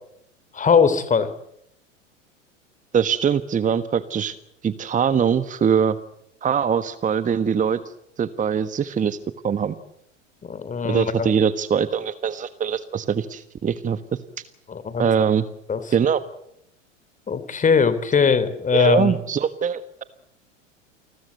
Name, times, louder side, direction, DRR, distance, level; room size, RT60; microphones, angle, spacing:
voice 1, 0.5-1.3 10.4-11.3 14.7-15.1 15.7-15.8 17.3-19.1, left 5 dB, 20° left, 13 dB, 3.3 m, -20 dB
voice 2, 2.9-4.3 4.6-6.0 6.4-7.8 8.2-9.2 9.4-9.7 10.9-14.0 15.0-15.4 15.9-16.2 18.7-20.0, right 7 dB, 20° right, 13 dB, 1.4 m, -22 dB
29.5 x 21.0 x 8.1 m, 0.76 s
figure-of-eight pair, 85°, 37 cm